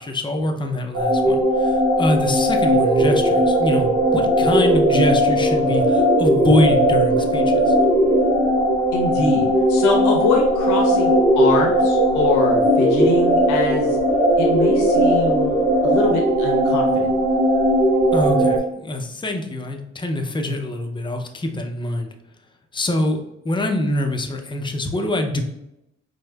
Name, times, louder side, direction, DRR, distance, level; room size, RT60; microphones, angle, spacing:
voice 1, 0.0-7.8 18.1-22.1 22.7-25.4, left 1 dB, 15° left, 4 dB, 0.5 m, -24 dB
sound 1, 0.9-18.6, equal, 70° right, 1.2 m, -18 dB
voice 2, 8.9-14.0 14.4-17.1, left 3 dB, 85° left, -1 dB, 0.9 m, -24 dB
4.9 x 2.1 x 2.2 m, 0.83 s
cardioid pair, 90°, 30 cm